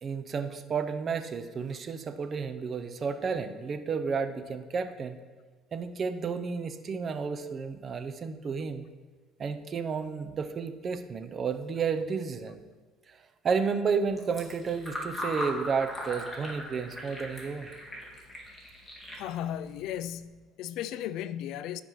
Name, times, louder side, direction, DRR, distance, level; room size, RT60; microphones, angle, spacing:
voice 1, 0.0-5.2 5.7-8.9 9.4-12.6 13.1-13.2 13.4-17.7, right 5 dB, 40° right, 0.7 m, -32 dB
Fill (with liquid), 14.1-20.3, equal, 10° left, 2.2 m, -40 dB
voice 2, 19.2-21.8, left 11 dB, 70° left, 0.3 m, -35 dB
15.0 x 5.2 x 3.2 m
cardioid pair, 105°, 0 cm